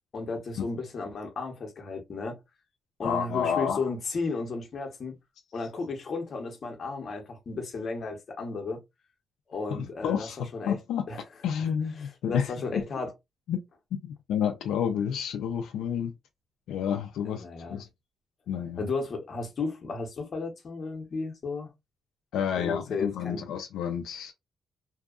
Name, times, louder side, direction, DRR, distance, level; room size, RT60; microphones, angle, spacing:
voice 1, 0.1-2.4 3.0-5.1 5.5-8.8 9.5-10.3 10.5-10.8 11.1-11.2 12.3-13.1 17.2-17.8 18.8-21.7 22.6-23.4, left 3 dB, 45° left, 1.0 m, -34 dB
voice 2, 3.0-3.9 9.7-11.1 11.4-12.5 13.5-13.6 13.9-16.1 16.7-17.9 18.5-18.9 22.3-24.3, left 8 dB, 90° left, 0.4 m, -30 dB
2.7 x 2.3 x 2.4 m
cardioid pair, 120°, 0 cm